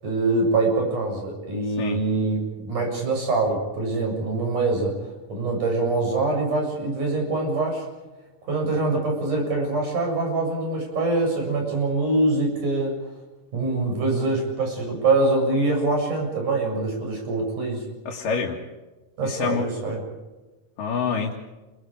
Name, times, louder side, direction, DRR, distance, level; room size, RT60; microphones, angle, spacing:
voice 1, 0.0-7.8 8.5-12.9 13.5-17.8 19.2-20.0, right 2 dB, 70° right, 1 dB, 8.7 m, -24 dB
voice 2, 18.1-18.6 19.2-19.7 20.8-21.3, left 6 dB, 85° left, -1 dB, 3.8 m, -26 dB
29.5 x 23.0 x 5.1 m, 1.1 s
omnidirectional pair, 3.7 m